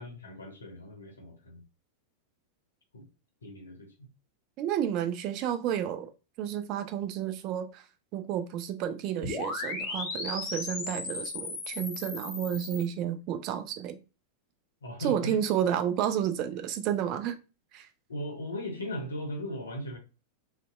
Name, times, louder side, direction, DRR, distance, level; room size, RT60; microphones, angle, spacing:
voice 1, 0.0-1.6 2.9-3.0 3.4-4.1 14.8-15.4 18.1-20.0, left 1 dB, 75° left, 0.6 m, -38 dB
voice 2, 4.6-6.1 6.4-7.8 8.1-14.0 15.0-17.4 17.7-17.9, right 10 dB, 40° right, 0.3 m, -31 dB
sound 1, 9.2-12.8, left 3 dB, 40° left, 0.7 m, -36 dB
2.5 x 2.1 x 2.4 m
figure-of-eight pair, 90°, 0 cm